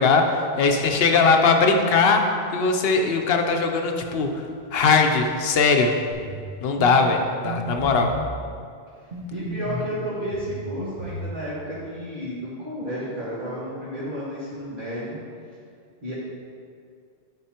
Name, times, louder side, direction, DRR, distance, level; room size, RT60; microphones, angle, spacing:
voice 1, 0.0-4.4 4.7-5.9 6.6-8.1, left 4 dB, 75° left, 4 dB, 0.9 m, -20 dB
sound 1, 6.1-6.4 6.8-6.9 7.4-8.2 9.1-9.9 10.3-11.3, equal, 90° right, 1.3 m, -32 dB
voice 2, 9.0-15.2 16.0-16.1, equal, 55° right, -11 dB, 1.9 m, -32 dB
10.5 x 5.9 x 2.9 m, 2.3 s
omnidirectional pair, 1.0 m